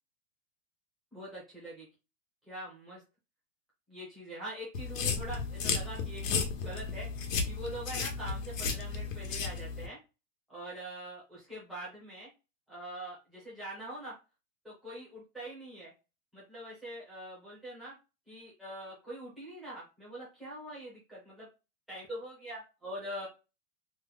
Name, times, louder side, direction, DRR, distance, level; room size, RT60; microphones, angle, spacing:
voice 1, 1.1-1.8 2.5-3.0 3.9-6.2 6.6-10.0 10.5-12.3 12.7-14.2 14.6-15.9 16.3-17.9 18.3-21.5 21.9-23.3, right 1 dB, ahead, -8 dB, 0.4 m, -44 dB
sound 1, 4.7-9.9, left 5 dB, 85° left, 1.1 m, -34 dB
3.0 x 2.1 x 3.8 m, 0.28 s
supercardioid pair, 180°, 38 cm